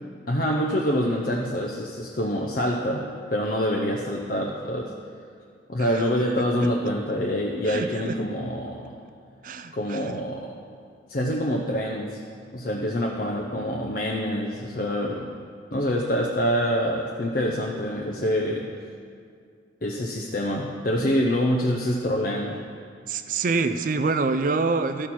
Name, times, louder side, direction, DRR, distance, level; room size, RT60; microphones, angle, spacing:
voice 1, 0.3-4.9 5.7-8.9 9.7-10.5 11.1-12.2 12.5-15.4 15.7-18.7 19.8-22.6, equal, 45° left, -1 dB, 0.6 m, -26 dB
voice 2, 7.7-8.2 9.4-10.2 23.1-25.1, right 4 dB, 45° right, 10 dB, 0.4 m, -26 dB
13.0 x 6.1 x 4.3 m, 2.2 s
head